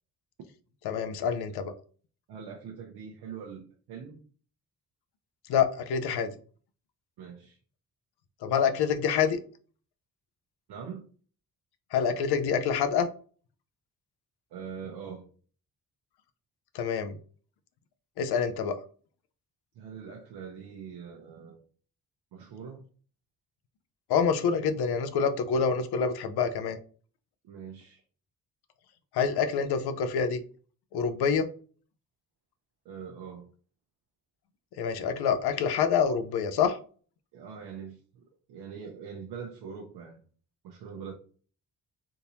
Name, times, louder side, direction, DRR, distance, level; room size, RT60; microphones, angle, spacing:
voice 1, 0.8-1.7 5.5-6.3 8.4-9.4 11.9-13.1 16.7-17.2 18.2-18.8 24.1-26.8 29.1-30.4 30.9-31.5 34.8-36.8, left 6 dB, 80° left, 10 dB, 0.6 m, -26 dB
voice 2, 2.3-4.2 7.2-7.6 10.7-11.1 14.5-15.3 19.7-21.6 22.3-22.8 27.4-28.0 32.8-33.5 37.3-40.2 40.6-41.1, right 6 dB, 85° right, -1 dB, 0.7 m, -43 dB
3.6 x 2.6 x 2.8 m, 0.41 s
cardioid pair, 85°, 38 cm